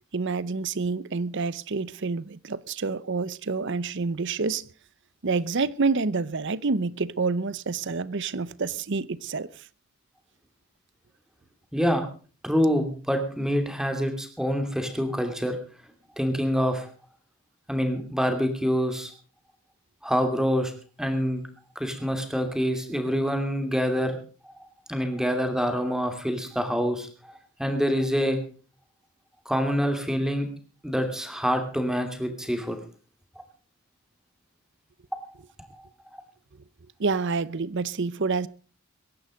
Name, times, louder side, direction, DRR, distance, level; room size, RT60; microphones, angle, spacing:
voice 1, 0.1-4.7 5.2-9.7 37.0-38.5, right 4 dB, 55° right, 0.7 m, -28 dB
voice 2, 12.4-15.6 16.2-16.9 17.7-19.1 20.0-20.7 21.0-21.4 21.8-24.2 24.4-24.5 24.9-27.1 27.6-28.4 29.5-30.5 30.8-32.8, equal, 5° right, 2.7 m, -26 dB
22.0 x 11.0 x 5.1 m
head